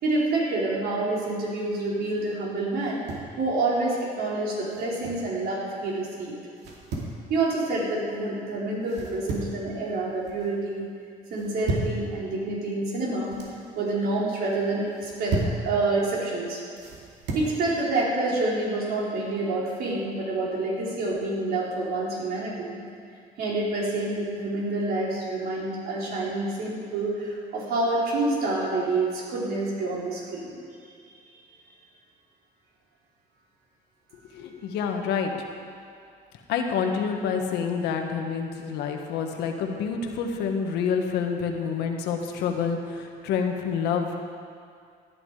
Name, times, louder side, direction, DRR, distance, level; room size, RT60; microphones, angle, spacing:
voice 1, 0.0-3.0 3.4-6.4 7.3-10.9 11.3-13.4 13.8-16.6 17.3-22.8 23.4-30.5, right 2 dB, 65° right, -5 dB, 4.4 m, -27 dB
sound 1, 2.8-3.4 4.7-5.3 6.6-7.2 8.9-9.6 10.0-10.5 11.3-12.0 13.0-13.6 14.9-15.6 16.8-17.5, right 2 dB, 80° right, 2.7 m, -33 dB
voice 2, 34.3-35.3 36.5-44.2, left 6 dB, 85° left, 3 dB, 1.6 m, -28 dB
17.0 x 11.0 x 4.9 m, 2.3 s
cardioid pair, 110°, 17 cm